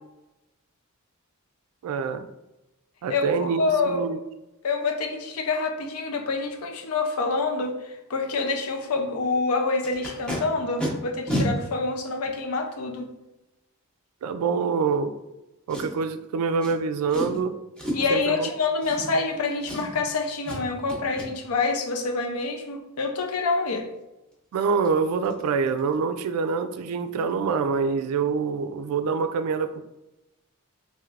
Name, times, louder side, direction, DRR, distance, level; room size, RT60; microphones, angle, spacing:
voice 1, 1.8-2.3 3.0-4.2 14.2-15.2 15.7-17.6 18.1-18.5 24.5-29.8, right 5 dB, 85° right, 13 dB, 0.3 m, -26 dB
voice 2, 3.6-4.0 4.6-13.1 17.9-23.9, left 3 dB, 90° left, 4 dB, 0.5 m, -27 dB
Packing tape duct tape, 9.8-10.4 10.8-10.9 11.3-11.5 12.3-12.4 15.7-16.1 16.6-16.7 17.1-17.4 17.8-18.2 18.8-19.3 19.6-20.1 20.4-20.6 20.9-21.3 24.3-24.4 24.7-24.9 25.2-25.4 25.7-25.9 26.2-26.3, equal, 5° left, 0.6 m, -31 dB
3.2 x 2.7 x 2.4 m, 0.97 s
head